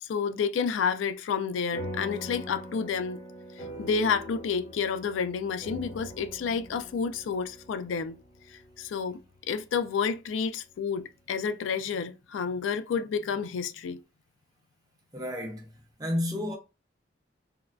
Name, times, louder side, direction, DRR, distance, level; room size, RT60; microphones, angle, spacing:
voice 1, 0.0-3.2 3.6-8.2 8.5-9.2 9.5-14.0, left 6 dB, 90° left, 0.3 m, -30 dB
sound 1, 1.7-10.5, left 1 dB, 45° left, 1.0 m, -43 dB
voice 2, 15.1-15.7 16.0-16.6, left 1 dB, 20° right, 0.7 m, -31 dB
3.5 x 2.3 x 2.2 m
head